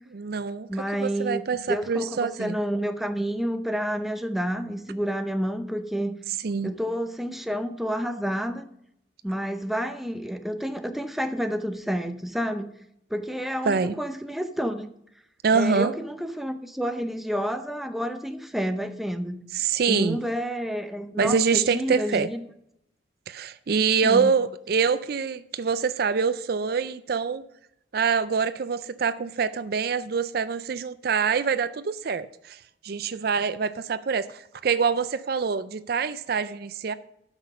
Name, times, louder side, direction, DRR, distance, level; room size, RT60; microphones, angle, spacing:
voice 1, 0.1-0.7 1.0-2.6 6.4-6.7 13.7-13.9 15.4-15.9 19.5-20.2 21.2-22.3 23.3-27.4 27.9-36.9, right 5 dB, 55° right, 0.4 m, -25 dB
voice 2, 0.7-1.4 1.7-6.2 6.6-8.7 9.2-12.7 13.1-14.9 15.5-19.4 19.9-22.4 24.0-24.3, equal, ahead, 0.6 m, -29 dB
11.5 x 6.2 x 5.4 m
head